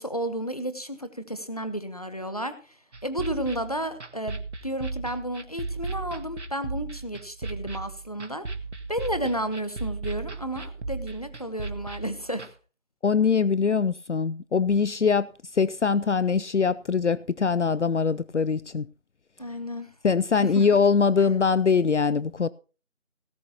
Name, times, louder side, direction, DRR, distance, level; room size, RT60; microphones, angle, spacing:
voice 1, 0.0-2.5 3.0-8.4 8.9-12.5 19.4-19.9 20.4-20.7, right 1 dB, 30° left, 1.0 m, -32 dB
sound 1, 2.9-12.5, right 3 dB, 65° right, 1.3 m, -36 dB
voice 2, 13.0-18.9 20.0-22.5, left 5 dB, 70° left, 0.5 m, -23 dB
18.0 x 10.5 x 2.9 m
figure-of-eight pair, 175°, 38 cm